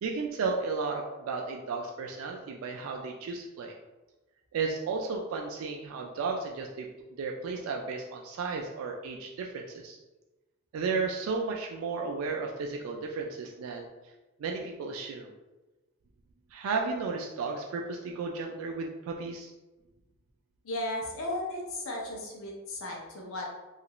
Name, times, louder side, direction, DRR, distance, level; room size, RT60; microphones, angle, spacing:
voice 1, 0.0-3.8 4.5-6.9 7.2-10.0 10.7-13.9 14.4-15.3 16.5-19.5, right 4 dB, 85° right, 1 dB, 0.3 m, -33 dB
voice 2, 20.6-23.5, left 1 dB, 75° left, -1 dB, 0.6 m, -35 dB
2.8 x 2.4 x 2.9 m, 1.1 s
head